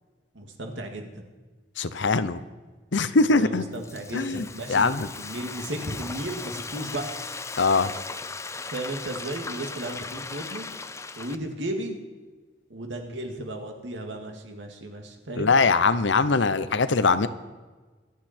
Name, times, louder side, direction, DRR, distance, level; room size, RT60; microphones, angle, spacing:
voice 1, 0.3-1.3 3.1-4.9 5.2-7.1 8.7-10.7 11.2-12.0 12.7-15.6, right 1 dB, 80° right, 3 dB, 2.2 m, -34 dB
voice 2, 1.8-2.4 2.9-3.6 4.1-5.1 7.6-7.9 15.4-17.3, left 4 dB, 80° left, 13 dB, 0.8 m, -22 dB
Frying (food), 3.5-11.4, left 4 dB, 15° left, 0.5 m, -38 dB
24.5 x 8.6 x 4.5 m, 1.3 s
head